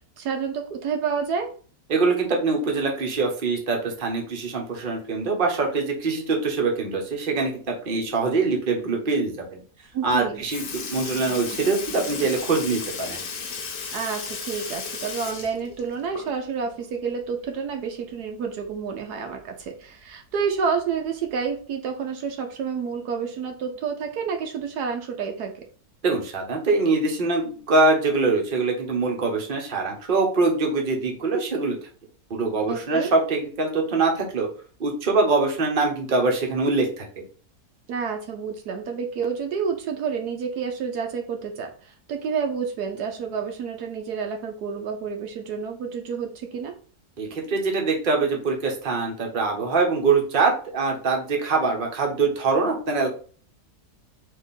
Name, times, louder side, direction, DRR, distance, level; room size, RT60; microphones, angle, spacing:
voice 1, 0.2-1.5 9.9-10.4 13.9-25.6 32.7-33.1 37.9-46.8, right 6 dB, 75° right, 3 dB, 1.3 m, -29 dB
voice 2, 1.9-9.6 10.0-13.2 26.0-31.8 32.3-34.5 34.8-37.2 47.2-53.1, right 3 dB, 35° right, 1 dB, 1.0 m, -23 dB
Sink (filling or washing) / Liquid, 10.1-10.2 10.5-16.6 17.0-17.1 18.6-18.7 19.6-19.7 20.5-20.8 21.6-21.7, left 5 dB, 55° left, 1.2 m, -35 dB
4.3 x 3.0 x 4.0 m, 0.41 s
omnidirectional pair, 1.7 m